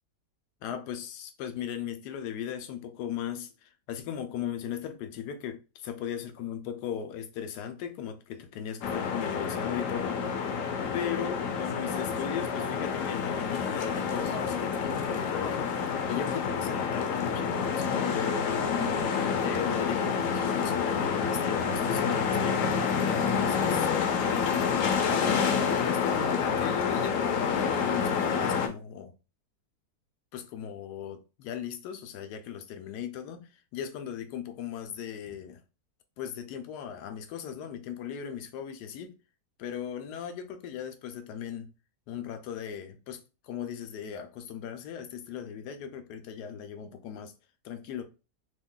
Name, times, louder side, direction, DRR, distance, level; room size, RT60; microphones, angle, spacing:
voice 1, 0.6-10.2 10.9-15.8 16.1-18.8 19.4-22.7 23.1-23.9 24.3-24.6 25.0-29.1 30.3-35.6 36.2-39.1 39.6-41.7 42.1-47.3 47.6-48.0, left 9 dB, 90° left, 1.2 m, -37 dB
sound 1, 8.8-28.7, left 6 dB, 65° left, 0.8 m, -28 dB
2.9 x 2.3 x 3.6 m
omnidirectional pair, 1.7 m